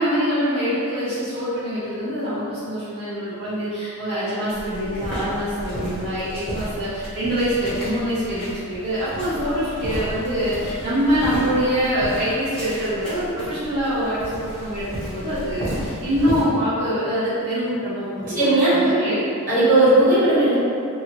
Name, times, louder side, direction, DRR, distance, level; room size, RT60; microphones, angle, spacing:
voice 1, 0.0-19.3, equal, 65° right, -13 dB, 0.7 m, -24 dB
sound 1, 4.5-16.4, equal, 5° left, 0.8 m, -33 dB
voice 2, 18.3-18.8 19.5-20.6, right 1 dB, 40° right, -14 dB, 1.5 m, -16 dB
2.7 x 2.6 x 2.8 m, 2.5 s
head